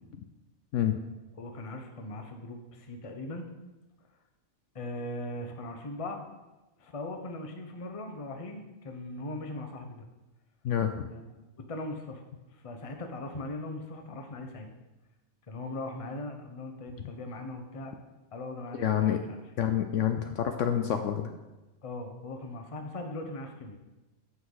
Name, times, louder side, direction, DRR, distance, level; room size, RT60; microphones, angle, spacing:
voice 1, 1.4-3.5 4.7-6.2 6.8-10.1 11.1-12.2 12.5-14.7 15.5-17.9 18.3-19.4 21.8-23.8, left 2 dB, 30° left, 5 dB, 0.8 m, -39 dB
voice 2, 10.6-11.1 18.7-19.2 19.6-21.3, left 9 dB, 70° left, 7 dB, 0.9 m, -28 dB
14.0 x 5.2 x 3.9 m, 1.1 s
omnidirectional pair, 1.5 m